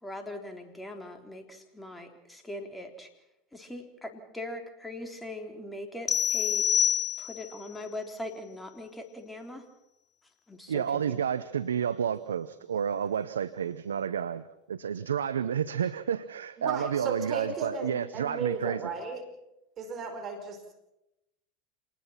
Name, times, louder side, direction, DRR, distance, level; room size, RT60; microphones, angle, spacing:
voice 1, 0.0-3.1 3.5-6.7 7.2-9.6 10.5-11.2, left 1 dB, 10° left, 5 dB, 3.8 m, -41 dB
sound 1, 6.1-7.6, left 9 dB, 30° left, 0.8 m, -26 dB
voice 2, 10.7-18.8, right 8 dB, 85° right, 15 dB, 0.7 m, -30 dB
voice 3, 16.6-19.2 19.8-20.7, right 4 dB, 35° right, 5 dB, 5.0 m, -35 dB
27.5 x 20.0 x 5.8 m, 0.89 s
hypercardioid pair, 85°, 0 cm